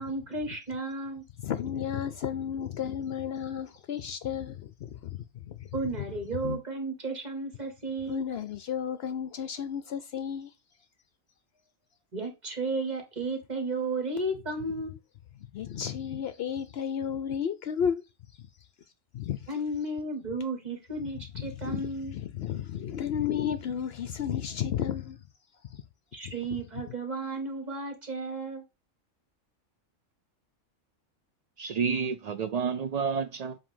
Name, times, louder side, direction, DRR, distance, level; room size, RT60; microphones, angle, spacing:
voice 1, 0.0-1.2 5.7-8.2 12.1-15.0 19.5-22.1 26.1-28.6, right 2 dB, 35° right, 1.7 m, -33 dB
voice 2, 1.4-6.2 6.4-6.6 8.1-10.5 15.4-18.0 18.3-18.7 19.1-19.6 21.0-25.3 25.6-25.8 26.2-26.6 26.9-27.0, left 8 dB, 65° left, 0.7 m, -33 dB
voice 3, 31.6-33.6, right 6 dB, 75° right, 0.3 m, -30 dB
7.5 x 2.8 x 5.4 m
omnidirectional pair, 1.3 m